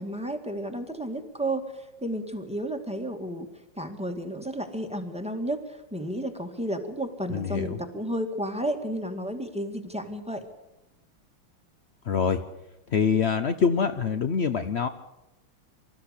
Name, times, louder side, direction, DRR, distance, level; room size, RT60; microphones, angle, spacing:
voice 1, 0.0-1.6 2.0-3.5 3.8-10.4, right 1 dB, 5° right, 6 dB, 1.7 m, -32 dB
voice 2, 7.3-7.8 12.0-12.4 12.9-14.9, left 6 dB, 70° left, 9 dB, 0.6 m, -25 dB
25.0 x 14.0 x 8.4 m, 0.97 s
omnidirectional pair, 2.3 m